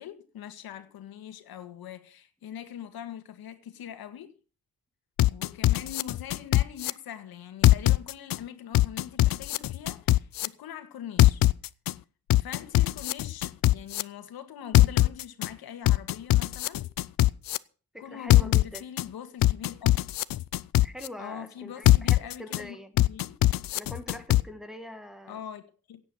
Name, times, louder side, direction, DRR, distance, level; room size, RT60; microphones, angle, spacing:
voice 1, 0.0-4.3 5.2-11.4 12.4-16.8 18.0-19.9 21.2-23.4 25.3-26.0, left 9 dB, 90° left, 1.9 m, -42 dB
sound 1, 5.2-6.9 7.6-8.4 8.7-10.5 11.2-11.9 12.3-14.0 14.7-15.5 15.9-17.6 18.3-19.0 19.4-21.1 21.9-22.6 23.0-24.4, left 15 dB, 70° left, 0.6 m, -21 dB
voice 2, 17.9-18.8 20.8-22.9 23.7-25.4, left 1 dB, ahead, 1.4 m, -43 dB
17.0 x 8.6 x 6.1 m
wide cardioid pair, 170°, 36 cm